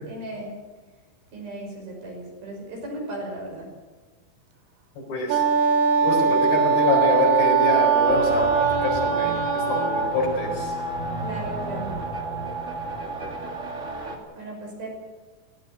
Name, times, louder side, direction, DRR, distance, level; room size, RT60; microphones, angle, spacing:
voice 1, 0.0-0.5 1.3-3.7 6.2-6.3 11.2-11.9 14.4-14.9, right 1 dB, 50° right, 0 dB, 7.5 m, -35 dB
voice 2, 5.1-5.4 6.0-10.7, left 2 dB, 55° left, 1 dB, 6.0 m, -25 dB
Wind instrument woodwind instrument, 5.3-10.2, right 6 dB, 85° right, 4.4 m, -21 dB
sound 1, 8.1-14.2, right 1 dB, 35° right, 1.2 m, -31 dB
18.5 x 17.0 x 9.1 m, 1.3 s
omnidirectional pair, 5.5 m